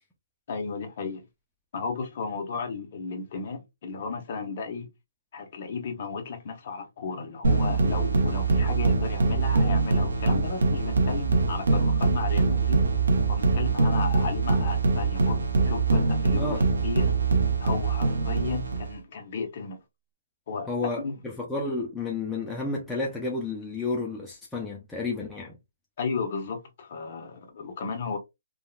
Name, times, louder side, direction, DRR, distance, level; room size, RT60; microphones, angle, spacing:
voice 1, 0.5-1.2 1.7-4.9 5.3-12.8 13.3-17.1 17.6-19.8 20.5-20.7 21.0-21.1 26.0-28.2, left 5 dB, 35° left, 0.8 m, -34 dB
sound 1, 7.4-18.9, right 3 dB, 80° right, 0.9 m, -23 dB
voice 2, 20.7-25.6, left 3 dB, ahead, 0.4 m, -31 dB
3.6 x 2.2 x 2.3 m
hypercardioid pair, 175°, 0 cm